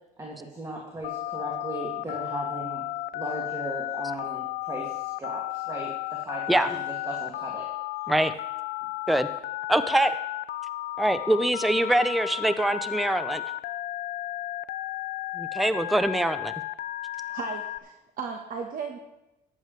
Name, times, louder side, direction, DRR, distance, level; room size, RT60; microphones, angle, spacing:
voice 1, 0.2-2.9 3.1-7.7, right 1 dB, 20° right, -2 dB, 2.4 m, -37 dB
Telephone, 1.0-17.8, left 16 dB, 70° left, 0.5 m, -34 dB
voice 2, 9.7-10.1 11.0-13.4 15.4-16.5, right 1 dB, ahead, 11 dB, 0.6 m, -24 dB
voice 3, 17.3-19.0, right 5 dB, 55° right, 3 dB, 1.3 m, -35 dB
14.5 x 11.0 x 3.3 m, 0.93 s
cardioid pair, 110°, 17 cm